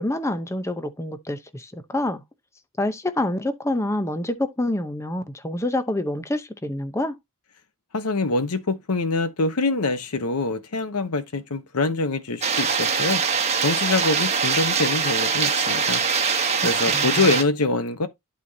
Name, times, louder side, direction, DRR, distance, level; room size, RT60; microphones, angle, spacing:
voice 1, 0.0-2.2 2.8-7.2 16.9-17.3, left 1 dB, 15° left, 0.7 m, -27 dB
voice 2, 7.9-13.2 13.6-16.0 16.6-18.1, left 3 dB, 90° left, 0.9 m, -24 dB
sound 1, 12.4-17.4, right 6 dB, 30° right, 1.1 m, -23 dB
11.5 x 4.3 x 2.8 m
head